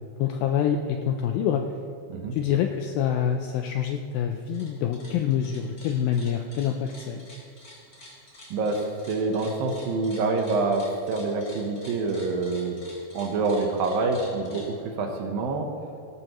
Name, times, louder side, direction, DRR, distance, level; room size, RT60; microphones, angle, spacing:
voice 1, 0.2-1.6 2.3-7.2, left 9 dB, 85° left, 5 dB, 2.1 m, -26 dB
sound 1, 4.4-4.7 4.9-14.7, left 1 dB, 25° left, 3.3 m, -48 dB
voice 2, 8.5-12.8 13.1-15.7, right 3 dB, 70° right, 3 dB, 2.5 m, -26 dB
18.0 x 12.0 x 3.0 m, 2.5 s
omnidirectional pair, 4.7 m